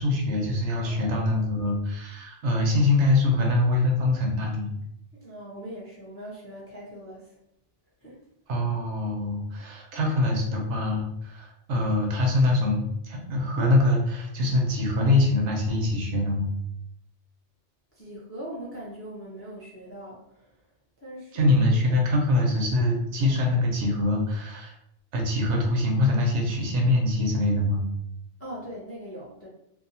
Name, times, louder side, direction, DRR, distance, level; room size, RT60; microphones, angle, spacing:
voice 1, 0.0-4.7 8.5-12.8 13.1-16.5 21.3-24.7 25.1-27.8, left 2 dB, 80° right, 0 dB, 0.9 m, -24 dB
voice 2, 0.8-1.5 5.1-7.4 8.0-8.2 17.9-20.6 21.0-21.8 28.4-29.5, equal, 20° left, -5 dB, 0.4 m, -41 dB
2.7 x 2.0 x 2.7 m, 0.78 s
omnidirectional pair, 1.2 m